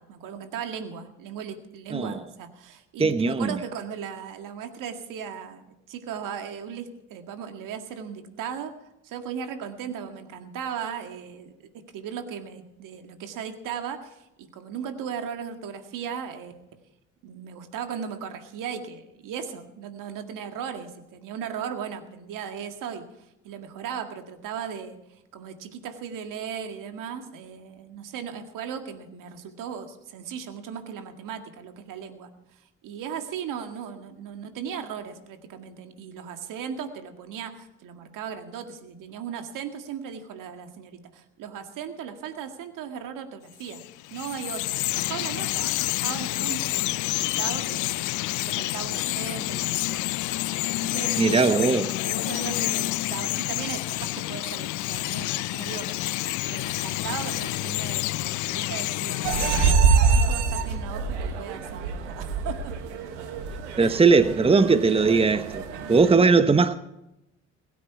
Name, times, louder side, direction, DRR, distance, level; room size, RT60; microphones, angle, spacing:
voice 1, 0.0-8.7 9.0-11.5 11.9-16.6 17.2-23.1 23.4-43.8 44.1-50.0 50.7-51.6 52.0-62.7 63.8-64.0 64.9-65.0 65.7-65.8, right 7 dB, 70° right, 2.0 m, -37 dB
voice 2, 3.0-3.5 51.2-51.9 63.8-65.6 65.9-66.7, right 4 dB, 15° right, 1.0 m, -19 dB
Bird vocalization bird call bird song, 43.6-59.7, left 19 dB, 65° left, 0.5 m, -28 dB
sound 1, 59.2-66.2, right 5 dB, 85° right, 1.6 m, -25 dB
21.5 x 9.3 x 4.7 m
hypercardioid pair, 50°, 33 cm